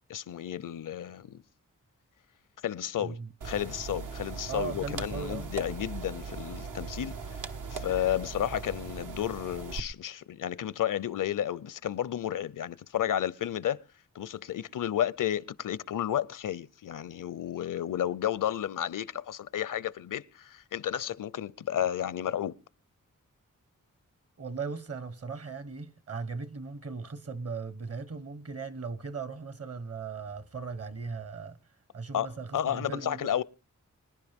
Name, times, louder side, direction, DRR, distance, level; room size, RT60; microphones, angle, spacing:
voice 1, 0.1-1.4 2.6-3.2 3.4-13.8 14.1-22.6 32.1-32.3 32.5-33.4, left 10 dB, 75° left, 0.6 m, -32 dB
voice 2, 3.0-3.3 4.5-5.5 24.4-31.6 31.9-33.3, right 5 dB, 50° right, 1.2 m, -38 dB
sound 1, 3.4-9.8, right 5 dB, 70° right, 1.1 m, -39 dB
24.5 x 10.5 x 3.6 m
cardioid pair, 65°, 32 cm